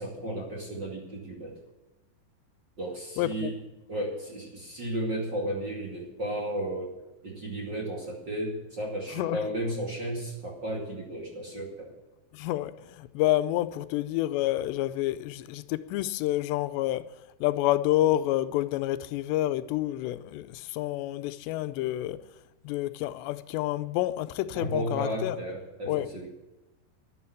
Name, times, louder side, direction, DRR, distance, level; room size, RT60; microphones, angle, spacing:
voice 1, 0.0-1.6 2.8-3.6 3.9-6.9 7.2-11.9 24.5-26.3, right 1 dB, 35° right, 2.2 m, -34 dB
voice 2, 3.2-3.5 9.1-9.4 12.3-17.1 17.4-22.2 22.6-25.4 25.9-26.1, left 15 dB, 90° left, 2.8 m, -28 dB
11.0 x 11.0 x 8.4 m
omnidirectional pair, 4.9 m